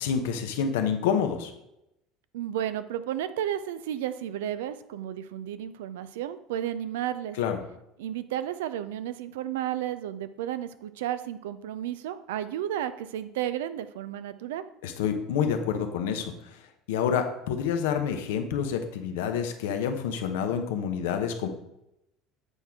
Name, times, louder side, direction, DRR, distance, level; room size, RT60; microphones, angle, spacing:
voice 1, 0.0-1.5 7.4-7.6 14.8-16.3 16.9-21.5, left 7 dB, 85° left, 6 dB, 0.8 m, -28 dB
voice 2, 2.3-7.4 8.0-14.6, right 11 dB, 85° right, 13 dB, 0.4 m, -32 dB
8.1 x 4.4 x 3.5 m, 0.86 s
supercardioid pair, 90°, 0 cm